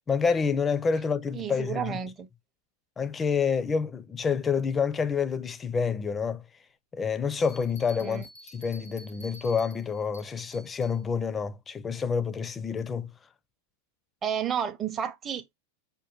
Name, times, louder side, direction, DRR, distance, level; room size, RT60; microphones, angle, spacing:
voice 1, 0.1-2.0 3.0-6.5 6.9-13.1, left 6 dB, 20° left, 0.4 m, -28 dB
voice 2, 1.3-2.3 8.0-8.2 14.2-15.5, right 8 dB, 25° right, 0.6 m, -31 dB
Bell, 7.3-11.0, equal, 80° left, 0.9 m, -50 dB
5.2 x 2.2 x 2.9 m
hypercardioid pair, 105°, 0 cm